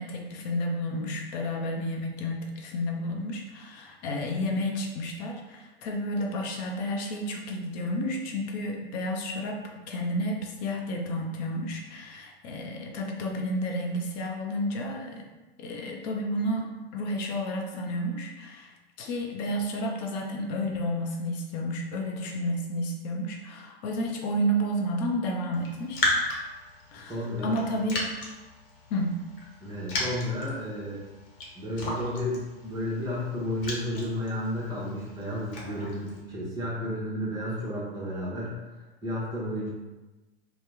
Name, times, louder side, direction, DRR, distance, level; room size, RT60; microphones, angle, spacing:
voice 1, 0.0-9.6 9.9-15.2 15.6-18.7 19.0-26.0 26.9-28.1 28.9-29.2, equal, 45° left, 1 dB, 0.6 m, -31 dB
Raindrop, 25.5-36.2, left 2 dB, 60° left, 1.0 m, -36 dB
voice 2, 26.9-27.6 29.6-31.0 31.5-39.7, left 1 dB, 10° right, -7 dB, 0.8 m, -32 dB
2.8 x 2.1 x 3.4 m, 1.1 s
figure-of-eight pair, 105°, 31 cm